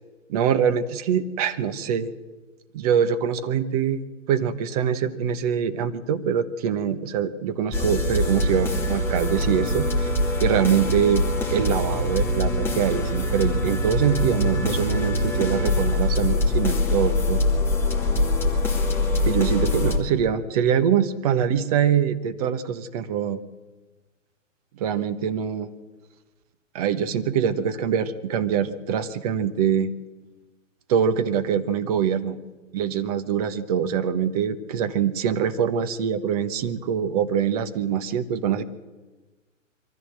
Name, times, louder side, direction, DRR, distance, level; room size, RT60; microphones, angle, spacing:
voice 1, 0.3-2.1 2.7-4.0 4.3-10.1 10.4-11.2 11.5-17.4 19.2-23.4 24.8-25.7 26.7-29.9 30.9-32.4 32.7-38.6, right 8 dB, 30° right, 11 dB, 1.2 m, -24 dB
sound 1, 7.7-20.0, left 1 dB, 5° left, 2.2 m, -23 dB
23.5 x 14.5 x 7.7 m, 1.3 s
hypercardioid pair, 140°, 39 cm